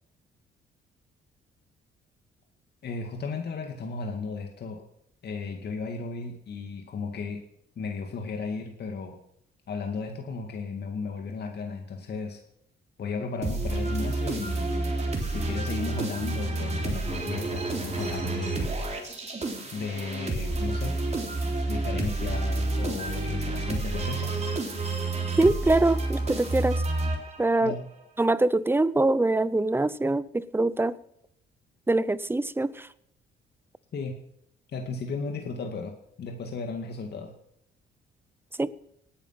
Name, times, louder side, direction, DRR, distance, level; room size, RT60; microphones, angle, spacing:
voice 1, 2.8-4.8 5.2-7.4 7.8-9.2 9.7-12.4 13.0-18.7 19.7-21.0 21.7-24.4 27.6-27.9 33.9-34.1 34.7-35.9 36.2-37.3, left 4 dB, 55° left, 2.3 m, -35 dB
sound 1, 13.4-27.7, right 2 dB, 35° right, 3.6 m, -29 dB
voice 2, 25.4-26.8 27.4-27.7 28.2-31.0 31.9-32.9 38.6-38.8, right 2 dB, 10° right, 0.7 m, -24 dB
18.5 x 10.5 x 5.9 m
cardioid pair, 90°, 20 cm